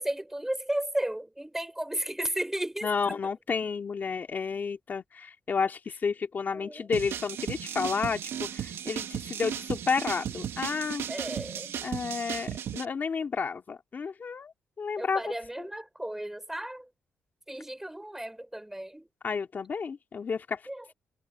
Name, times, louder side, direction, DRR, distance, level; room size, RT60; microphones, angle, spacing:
voice 1, 0.0-3.3 6.5-6.9 8.0-8.2 11.1-11.8 15.0-16.9 17.5-19.1 20.7-20.9, right 1 dB, 10° right, 3.8 m, -34 dB
voice 2, 2.8-11.1 11.8-15.2 19.2-20.6, left 5 dB, 50° left, 2.4 m, -31 dB
sound 1, 6.9-12.9, right 9 dB, 80° right, 1.7 m, -35 dB
cardioid pair, 80°, 4 cm